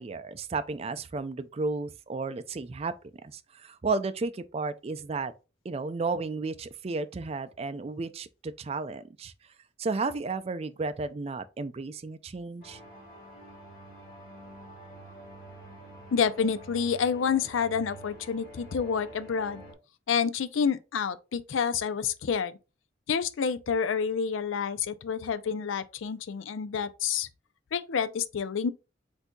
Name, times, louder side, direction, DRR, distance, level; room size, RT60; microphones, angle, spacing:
voice 1, 0.0-2.9 3.2-5.3 5.6-9.3 9.8-12.8, right 3 dB, 30° right, 0.4 m, -33 dB
sound 1, 12.6-19.7, right 1 dB, 50° left, 2.3 m, -47 dB
voice 2, 16.1-19.6 20.1-22.5 23.1-27.3 27.7-28.7, left 6 dB, 80° left, 0.4 m, -28 dB
8.0 x 2.7 x 2.3 m
head